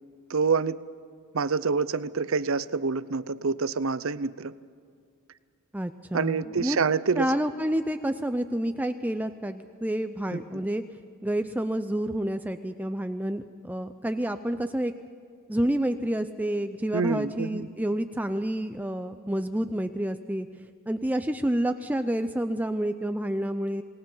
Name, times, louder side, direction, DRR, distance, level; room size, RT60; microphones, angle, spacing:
voice 1, 0.3-0.8 1.3-4.5 6.1-7.3 10.3-10.4 16.9-17.7, right 5 dB, 65° right, 16 dB, 0.7 m, -27 dB
voice 2, 5.7-6.8 7.2-10.8 11.2-14.9 15.5-20.5 20.9-23.8, right 1 dB, 5° right, 8 dB, 0.5 m, -29 dB
28.5 x 19.0 x 5.6 m, 2.2 s
head